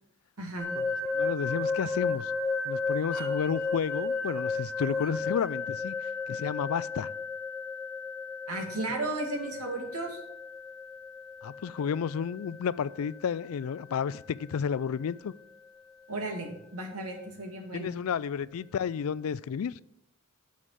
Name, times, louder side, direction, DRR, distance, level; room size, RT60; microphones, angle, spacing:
sound 1, 0.6-15.4, left 3 dB, 5° left, 2.8 m, -34 dB
voice 1, 0.8-2.3 2.7-5.9 6.3-7.1 11.4-15.3 17.7-19.7, left 7 dB, 75° left, 0.3 m, -31 dB
voice 2, 8.5-10.2 16.1-17.9, right 2 dB, 90° right, 2.2 m, -34 dB
7.3 x 6.3 x 7.4 m
head